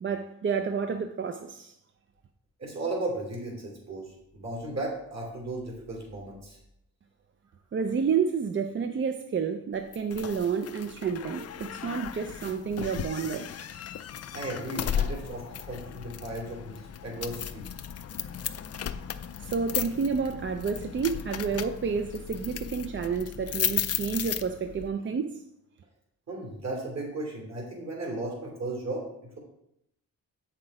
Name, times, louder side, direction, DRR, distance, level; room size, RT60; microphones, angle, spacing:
voice 1, 0.0-1.8 7.7-13.5 19.4-25.4, right 6 dB, 40° right, 0.4 m, -30 dB
voice 2, 2.6-6.6 14.3-17.7 26.3-29.4, right 2 dB, 55° right, 2.9 m, -35 dB
sound 1, 9.9-24.9, left 9 dB, 50° left, 0.5 m, -35 dB
7.7 x 5.8 x 4.8 m
wide cardioid pair, 155°, 32 cm